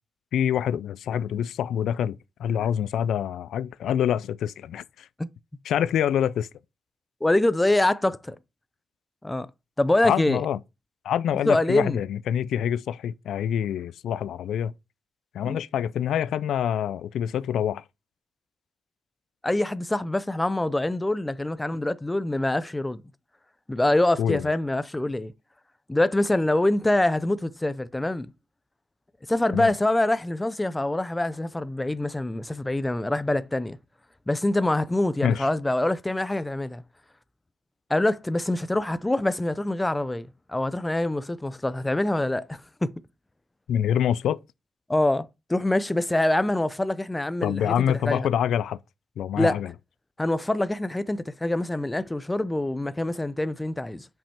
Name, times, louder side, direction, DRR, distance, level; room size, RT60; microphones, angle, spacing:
voice 1, 0.3-5.1 5.6-6.5 10.0-10.6 11.0-14.7 15.3-17.8 24.2-24.5 29.5-29.7 35.2-35.5 43.7-44.4 47.4-48.8 49.2-49.7, left 9 dB, 85° left, 0.4 m, -26 dB
voice 2, 7.2-8.4 9.2-9.5 9.8-10.4 11.5-12.0 15.4-15.6 19.4-23.0 23.7-25.3 25.9-28.3 29.3-33.8 34.3-36.8 37.9-42.9 44.9-47.7 48.0-48.3 49.3-49.6 50.2-54.1, left 1 dB, 10° left, 0.4 m, -25 dB
5.7 x 5.4 x 4.3 m
wide cardioid pair, 160°, 0 cm